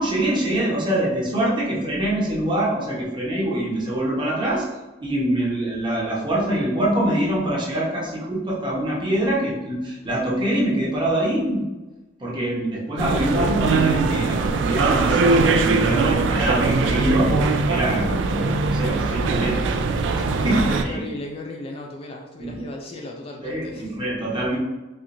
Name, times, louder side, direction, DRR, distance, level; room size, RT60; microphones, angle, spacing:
voice 1, 0.0-4.7 5.0-11.6 12.2-17.3 17.7-19.8 20.0-21.1 22.4-22.6 23.4-24.6, right 1 dB, 25° right, -5 dB, 0.9 m, -24 dB
sound 1, 13.0-20.8, right 3 dB, 80° right, 0.3 m, -21 dB
voice 2, 20.5-23.9, left 1 dB, 30° left, 0 dB, 0.3 m, -35 dB
4.3 x 2.4 x 2.5 m, 1.1 s
head